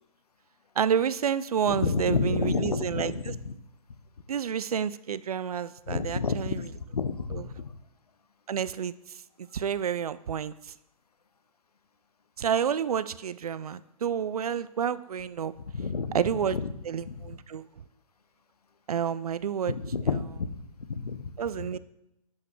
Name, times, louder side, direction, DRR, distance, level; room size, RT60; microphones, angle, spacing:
voice 1, 0.8-3.3 4.3-6.7 7.3-7.5 8.5-8.9 9.4-10.5 12.4-15.5 16.1-16.6 16.8-17.6 18.9-19.7 21.4-21.8, right 8 dB, 80° right, 17 dB, 0.4 m, -29 dB
voice 2, 1.7-3.5 5.9-7.7 15.7-16.2 16.5-16.7 17.1-17.2 19.7-20.5 20.9-21.3, left 4 dB, 85° left, 11 dB, 0.7 m, -30 dB
10.5 x 5.8 x 3.1 m, 0.85 s
figure-of-eight pair, 125°, 19 cm